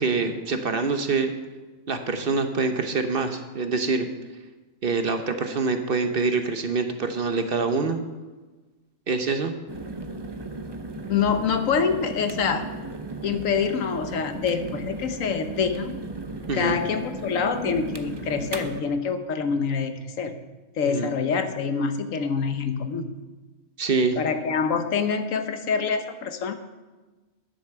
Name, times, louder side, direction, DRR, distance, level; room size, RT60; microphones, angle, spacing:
voice 1, 0.0-1.3 1.9-4.1 4.8-8.0 9.1-9.5 16.5-16.8 20.9-21.1 23.8-24.2, right 4 dB, 50° right, 7 dB, 1.0 m, -25 dB
sound 1, 9.7-18.8, right 2 dB, 25° right, 0.6 m, -36 dB
voice 2, 11.1-12.7 13.2-16.0 16.5-20.3 20.8-23.1 24.2-26.6, left 6 dB, 80° left, 8 dB, 1.3 m, -26 dB
10.0 x 8.2 x 6.8 m, 1.2 s
omnidirectional pair, 1.4 m